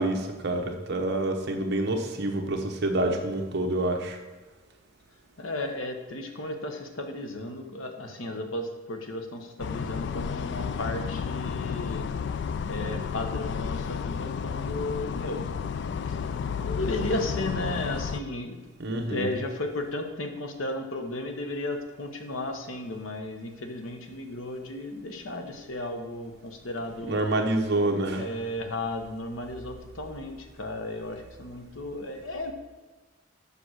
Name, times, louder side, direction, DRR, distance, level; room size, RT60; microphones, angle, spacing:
voice 1, 0.0-4.2 18.8-19.3 27.0-28.3, right 2 dB, 55° right, 3 dB, 1.0 m, -27 dB
voice 2, 5.4-12.1 12.6-15.5 16.1-16.2 16.6-18.6 18.9-27.3 28.2-32.5, left 1 dB, 85° left, 5 dB, 1.1 m, -34 dB
sound 1, 9.6-18.2, left 6 dB, 60° left, 0.3 m, -32 dB
6.8 x 5.5 x 6.3 m, 1.3 s
head